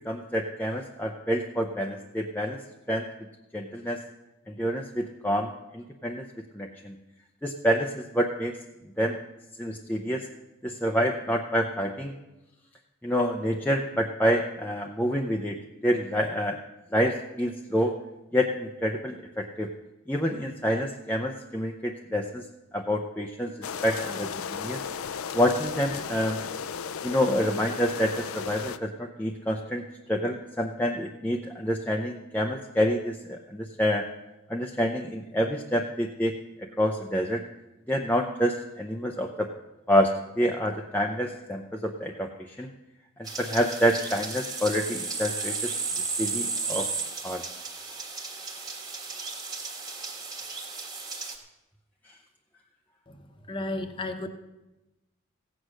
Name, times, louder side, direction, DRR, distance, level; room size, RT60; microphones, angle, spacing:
voice 1, 0.0-2.6 2.9-3.0 3.5-4.0 4.5-6.2 6.5-7.0 7.4-8.6 9.0-9.2 9.6-10.3 10.6-12.1 13.0-15.6 15.8-16.6 16.9-18.0 18.3-19.7 20.1-22.5 22.7-23.5 23.8-24.8 25.3-26.4 27.0-29.8 30.1-34.0 34.5-36.3 36.6-37.4 37.9-39.5 39.9-42.7 43.4-45.7 46.2-46.9 47.2-47.4, equal, 10° left, 1 dB, 0.6 m, -27 dB
sound 1, 23.6-28.8, left 7 dB, 80° left, 0.5 m, -35 dB
sound 2, 43.3-51.4, right 4 dB, 20° right, 1.5 m, -34 dB
voice 2, 53.1-54.3, left 2 dB, 25° left, 6 dB, 0.9 m, -34 dB
16.0 x 8.1 x 6.3 m, 1.0 s
head